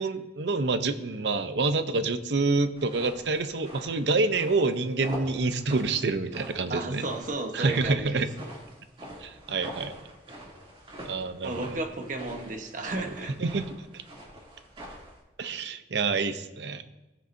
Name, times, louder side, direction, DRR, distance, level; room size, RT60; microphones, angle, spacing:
voice 1, 0.0-7.0 7.5-8.3 9.2-9.9 11.0-11.8 13.4-13.7 13.9-14.0 15.4-16.8, right 3 dB, 75° right, 10 dB, 0.7 m, -27 dB
sound 1, 2.8-15.2, equal, 30° right, 2.7 m, -45 dB
voice 2, 6.7-8.2 11.4-13.3, right 2 dB, 50° right, 5 dB, 1.1 m, -33 dB
19.5 x 6.5 x 2.7 m, 1.0 s
head